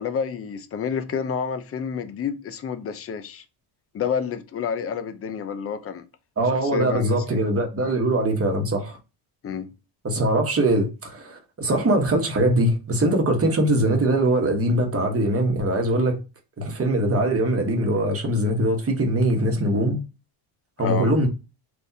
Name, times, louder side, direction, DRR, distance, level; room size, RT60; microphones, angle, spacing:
voice 1, 0.0-3.4 3.9-6.1 6.5-7.2 7.8-7.9 9.4-9.7 20.8-21.2, left 6 dB, 30° left, 0.6 m, -29 dB
voice 2, 6.4-9.0 10.0-16.2 16.6-20.0 20.8-21.3, right 1 dB, 30° right, 1.2 m, -22 dB
3.5 x 2.6 x 2.7 m
supercardioid pair, 85°, 50 cm